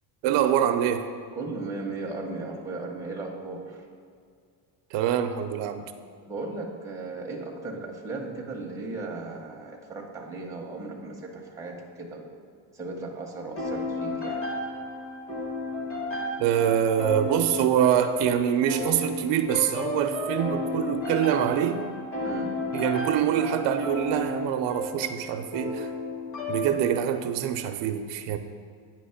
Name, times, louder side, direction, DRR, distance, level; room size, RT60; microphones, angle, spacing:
voice 1, 0.2-1.1 4.9-5.8 16.4-21.9 22.7-25.9 26.5-28.4, right 9 dB, 70° right, 8 dB, 0.5 m, -25 dB
voice 2, 1.3-3.8 6.3-12.4 12.7-14.4 22.2-22.5, right 3 dB, 5° right, -1 dB, 0.6 m, -36 dB
sound 1, 13.6-27.2, left 2 dB, 30° left, 1.1 m, -33 dB
8.8 x 3.0 x 5.6 m, 2.2 s
cardioid pair, 160°, 45 cm